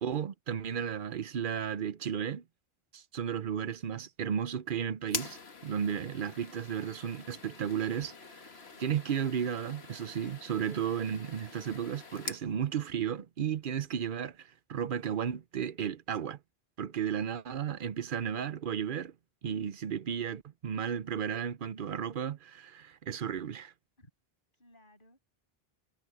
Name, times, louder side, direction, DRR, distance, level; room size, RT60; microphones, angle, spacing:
voice 1, 0.0-2.4 2.9-5.4 5.6-8.5 8.8-14.3 14.7-16.4 16.8-19.1 19.4-23.7, right 8 dB, 60° right, 0.8 m, -34 dB
sound 1, 5.0-12.5, left 5 dB, 90° left, 1.7 m, -44 dB
voice 2, 13.8-14.2 24.0-24.1 24.5-25.2, left 1 dB, 55° left, 7.1 m, -62 dB
omnidirectional pair, 1.0 m